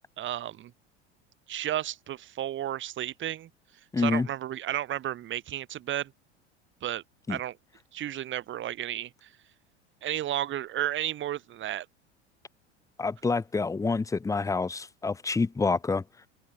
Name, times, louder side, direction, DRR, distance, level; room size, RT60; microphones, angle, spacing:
voice 1, 0.2-0.7 1.5-3.5 4.0-6.1 6.8-7.0 7.3-7.6 7.9-9.3 10.0-11.9, right 12 dB, 35° right, 1.9 m, -32 dB
voice 2, 3.9-4.3 7.3-7.4 13.0-16.0, left 4 dB, 10° left, 0.8 m, -27 dB
figure-of-eight pair, 80°, 35 cm